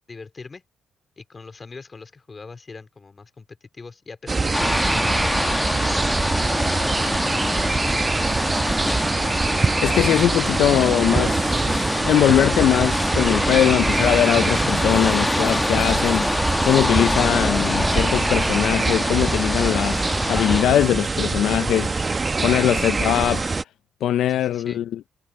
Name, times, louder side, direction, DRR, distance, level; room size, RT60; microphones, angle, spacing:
voice 1, 0.1-0.6 1.2-4.7 5.0-5.7 22.7-22.9 24.3-24.8, left 4 dB, 30° left, 2.5 m, -41 dB
sound 1, 4.3-23.6, right 3 dB, 25° right, 0.9 m, -24 dB
sound 2, 4.5-20.6, left 2 dB, 15° left, 1.1 m, -25 dB
voice 2, 9.8-21.9 22.4-23.5 24.0-25.0, left 11 dB, 75° left, 0.5 m, -21 dB
cardioid pair, 90°, 0 cm